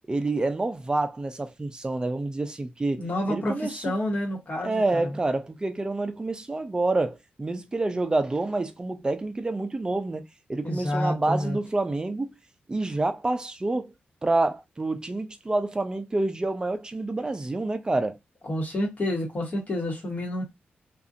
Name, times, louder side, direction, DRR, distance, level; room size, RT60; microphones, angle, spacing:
voice 1, 0.1-3.8 4.6-10.2 10.5-12.3 12.7-13.9 14.2-18.2, right 2 dB, 25° right, 0.5 m, -28 dB
voice 2, 3.0-5.1 10.6-11.6 18.4-20.4, left 1 dB, 45° left, 1.2 m, -29 dB
2.7 x 2.4 x 2.5 m
cardioid pair, 80°, 4 cm